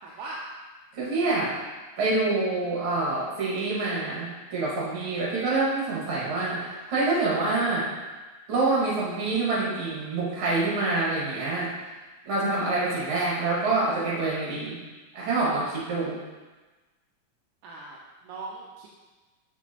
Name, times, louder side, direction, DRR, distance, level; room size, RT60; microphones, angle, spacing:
voice 1, 0.0-0.4 17.6-18.9, right 2 dB, 80° right, -3 dB, 1.9 m, -40 dB
voice 2, 0.9-1.5 2.0-7.9 8.5-11.7 12.3-14.8 15.1-16.2, right 3 dB, 45° right, -6 dB, 2.1 m, -26 dB
6.2 x 6.0 x 2.8 m, 1.2 s
omnidirectional pair, 4.2 m